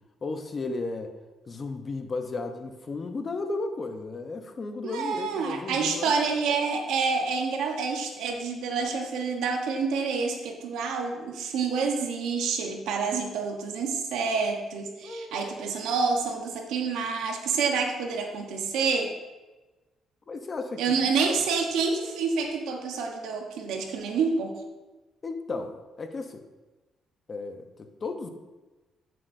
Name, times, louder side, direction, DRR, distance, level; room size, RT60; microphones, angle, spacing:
voice 1, 0.2-1.1 1.5-6.2 15.0-15.7 20.3-21.1 25.2-26.4 27.3-28.3, left 3 dB, 40° left, 7 dB, 0.9 m, -34 dB
voice 2, 4.8-19.1 20.8-24.5, right 5 dB, 90° right, 3 dB, 1.1 m, -28 dB
8.5 x 7.6 x 2.7 m, 1.2 s
cardioid pair, 90°, 0 cm